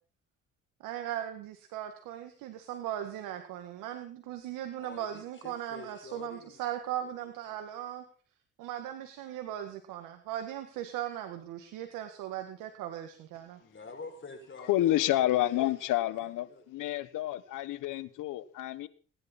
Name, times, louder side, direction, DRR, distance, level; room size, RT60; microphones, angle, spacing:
voice 1, 0.8-8.0 8.6-13.6, right 11 dB, 85° right, 1.8 m, -38 dB
voice 2, 4.8-6.6 7.0-7.1 7.5-7.6 13.6-15.7 16.1-16.6, left 4 dB, 40° left, 6.6 m, -48 dB
voice 3, 14.7-18.9, left 14 dB, 80° left, 1.5 m, -29 dB
28.0 x 11.0 x 4.4 m
supercardioid pair, 70°, 31 cm